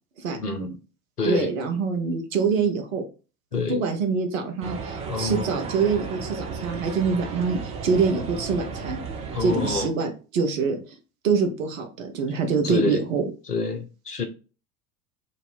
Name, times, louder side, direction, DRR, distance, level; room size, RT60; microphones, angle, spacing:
voice 1, 0.3-0.8 1.2-1.5 3.5-3.9 5.1-5.6 9.3-9.9 12.6-13.0 13.5-14.2, left 4 dB, 90° left, 0.9 m, -27 dB
voice 2, 1.2-3.0 3.5-9.0 9.4-10.8 11.2-13.2, right 5 dB, 60° right, 1.1 m, -25 dB
sound 1, 4.6-9.9, right 5 dB, 15° right, 0.3 m, -34 dB
3.1 x 2.7 x 4.3 m
figure-of-eight pair, 80°, 45 cm